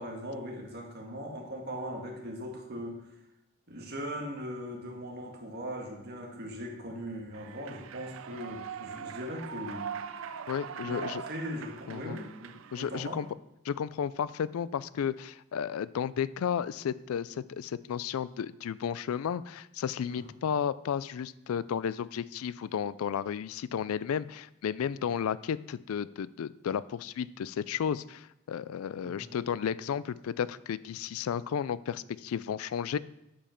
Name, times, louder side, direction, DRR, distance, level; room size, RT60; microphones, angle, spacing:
voice 1, 0.0-3.0 3.7-9.9 10.8-13.2 20.1-20.3 29.0-29.3, equal, 50° right, 1 dB, 1.7 m, -39 dB
Human voice / Clapping / Cheering, 7.3-13.3, right 7 dB, 65° right, 0.5 m, -42 dB
voice 2, 10.5-11.2 11.9-12.2 12.7-13.3 13.6-33.0, left 8 dB, 85° left, 18 dB, 0.3 m, -33 dB
8.6 x 5.3 x 5.7 m, 0.85 s
head